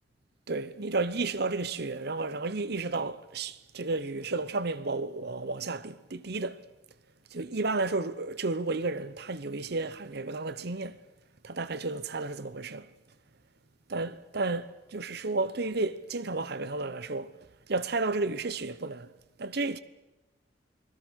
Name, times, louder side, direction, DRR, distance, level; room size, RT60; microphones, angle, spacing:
voice 1, 0.5-6.6 7.3-11.0 11.4-12.9 13.9-17.4 17.7-19.1 19.4-19.8, right 3 dB, 60° right, 1.0 m, -32 dB
30.0 x 20.5 x 6.4 m
head